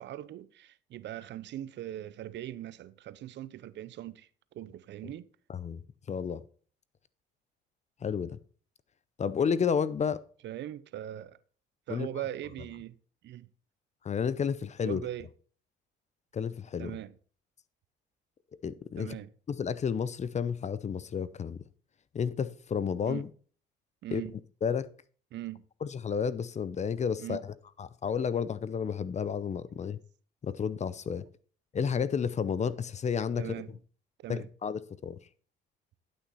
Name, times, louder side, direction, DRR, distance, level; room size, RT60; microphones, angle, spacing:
voice 1, 0.0-4.3 4.5-5.3 10.4-11.4 11.9-12.9 13.2-13.5 14.8-15.3 16.8-17.1 19.0-19.3 23.1-23.3 24.0-24.3 25.3-25.6 27.2-27.4 31.2-31.3 33.4-33.8 34.2-34.5, right 13 dB, 60° right, 0.6 m, -40 dB
voice 2, 5.5-5.8 6.1-6.4 8.0-8.4 9.2-10.2 11.9-12.1 14.0-15.0 16.3-16.9 18.6-19.2 19.5-21.6 22.1-23.3 24.1-24.2 24.6-24.9 25.8-30.0 30.4-31.2 31.7-33.5 34.3-35.2, left 6 dB, 35° left, 0.6 m, -31 dB
11.0 x 6.3 x 4.1 m
supercardioid pair, 80°, 21 cm